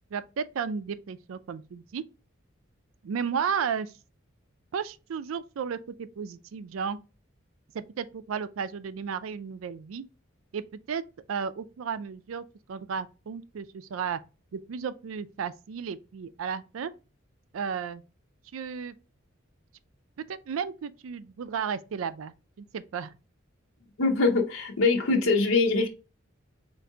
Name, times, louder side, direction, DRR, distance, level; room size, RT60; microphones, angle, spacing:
voice 1, 0.1-2.0 3.0-3.9 4.7-7.0 7.7-10.0 10.5-11.0 11.3-14.2 14.5-16.9 17.5-18.0 18.5-19.0 20.3-23.1, right 6 dB, 85° right, 0.4 m, -33 dB
voice 2, 24.0-25.9, left 3 dB, 80° left, 0.7 m, -23 dB
4.5 x 2.6 x 3.7 m
head